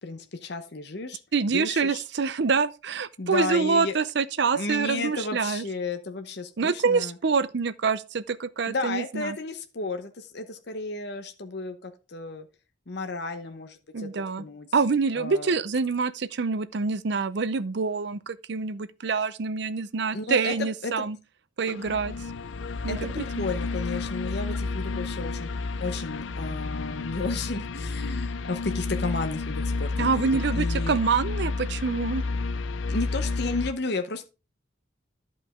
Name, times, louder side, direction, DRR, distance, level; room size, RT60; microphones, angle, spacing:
voice 1, 0.0-1.2 1.5-2.0 3.2-4.0 4.5-7.1 8.7-12.5 12.9-14.7 15.1-15.5 20.1-21.0 22.9-25.5 25.7-31.0 32.9-34.2, left 3 dB, 55° left, 0.9 m, -33 dB
voice 2, 1.3-5.6 6.6-9.4 13.9-14.5 14.7-21.2 21.6-22.1 22.8-23.2 30.0-32.2, right 5 dB, 60° right, 0.5 m, -26 dB
sound 1, 21.7-33.7, left 3 dB, 80° left, 0.6 m, -31 dB
11.5 x 5.4 x 3.6 m
head